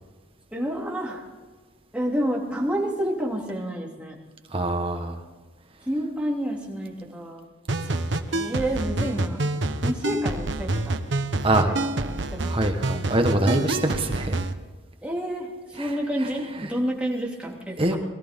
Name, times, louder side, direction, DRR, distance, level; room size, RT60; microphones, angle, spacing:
voice 1, 0.5-1.2 1.9-4.2 5.8-7.5 8.3-9.4 9.8-11.0 11.5-12.7 15.0-18.0, equal, 5° right, -3 dB, 2.6 m, -29 dB
voice 2, 4.5-5.2 11.4-11.7 12.4-14.4 15.8-15.9 17.8-18.0, right 1 dB, 30° right, 4 dB, 1.3 m, -24 dB
sound 1, 7.7-14.5, right 2 dB, 70° right, 0.9 m, -27 dB
22.0 x 14.0 x 3.7 m, 1.3 s
head